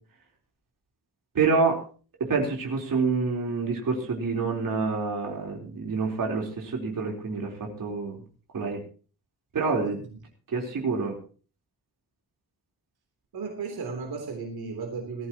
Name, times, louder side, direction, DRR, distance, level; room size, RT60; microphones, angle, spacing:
voice 1, 1.3-1.8 2.2-8.2 8.5-8.8 9.5-10.0 10.5-11.2, right 4 dB, 60° right, 0 dB, 4.0 m, -27 dB
voice 2, 9.8-10.2 13.3-15.3, right 4 dB, 80° right, 3 dB, 3.5 m, -35 dB
19.5 x 14.5 x 3.0 m, 0.38 s
wide cardioid pair, 180°, 37 cm